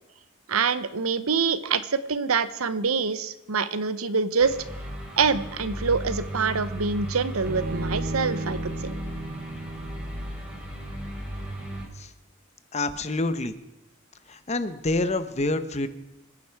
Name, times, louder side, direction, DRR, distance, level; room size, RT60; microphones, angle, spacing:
voice 1, 0.5-4.6 5.2-8.9, right 5 dB, 80° right, 13 dB, 0.9 m, -25 dB
sound 1, 4.4-11.9, right 1 dB, 5° right, 4.3 m, -35 dB
Bowed string instrument, 7.5-10.7, right 2 dB, 45° right, 0.6 m, -35 dB
voice 2, 12.7-13.5 14.3-15.9, left 2 dB, 30° left, 11 dB, 1.0 m, -27 dB
27.0 x 10.0 x 4.7 m, 0.89 s
head